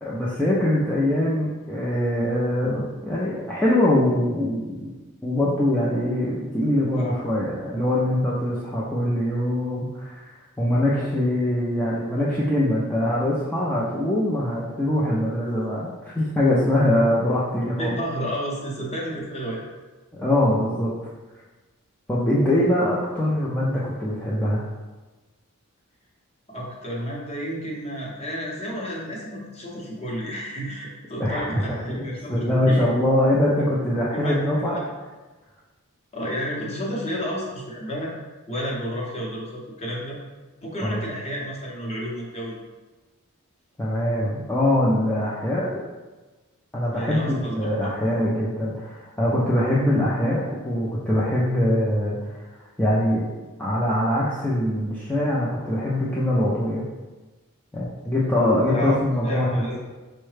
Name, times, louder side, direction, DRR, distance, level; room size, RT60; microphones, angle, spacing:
voice 1, 0.0-4.9 5.2-10.3 10.6-18.0 20.1-21.1 22.1-24.6 31.2-34.8 40.8-41.0 43.8-45.7 46.7-52.4 52.8-53.3 53.6-56.9 57.7-59.7, left 1 dB, 5° left, -7 dB, 0.4 m, -23 dB
voice 2, 17.6-19.6 26.5-32.9 34.1-34.3 34.7-34.9 36.1-38.1 38.5-40.2 40.6-42.6 46.9-47.5 58.6-59.0 59.2-59.8, equal, 30° left, -3 dB, 0.7 m, -31 dB
4.5 x 2.1 x 3.2 m, 1.2 s
head